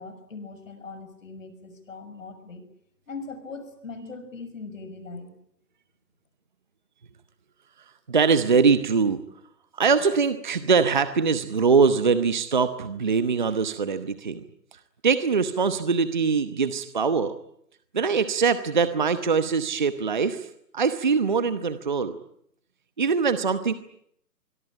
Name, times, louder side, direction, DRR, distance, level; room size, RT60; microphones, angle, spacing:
voice 1, 0.0-2.7 3.1-5.3, left 4 dB, 50° left, 10 dB, 6.2 m, -40 dB
voice 2, 8.1-9.2 9.8-14.4 15.0-17.3 17.9-20.5 20.7-22.2 23.0-23.7, right 5 dB, 30° right, 12 dB, 1.0 m, -22 dB
25.5 x 22.5 x 9.0 m, 0.71 s
figure-of-eight pair, 160°, 50 cm